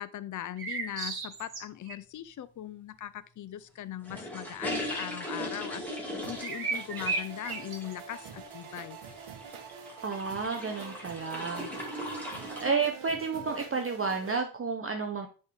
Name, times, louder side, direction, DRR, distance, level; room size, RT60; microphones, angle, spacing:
voice 1, 0.0-9.0, left 12 dB, 40° left, 15 dB, 0.4 m, -40 dB
sound 1, 0.6-1.9 6.4-7.9, right 4 dB, 45° right, 1.6 m, -34 dB
sound 2, 4.0-12.8, equal, 5° left, 1.8 m, -39 dB
sound 3, 6.2-14.4, right 7 dB, 75° right, 1.3 m, -46 dB
voice 2, 10.0-11.7 12.6-15.3, right 5 dB, 25° right, 3 dB, 0.7 m, -31 dB
9.6 x 3.8 x 3.4 m, 0.36 s
wide cardioid pair, 150°, 49 cm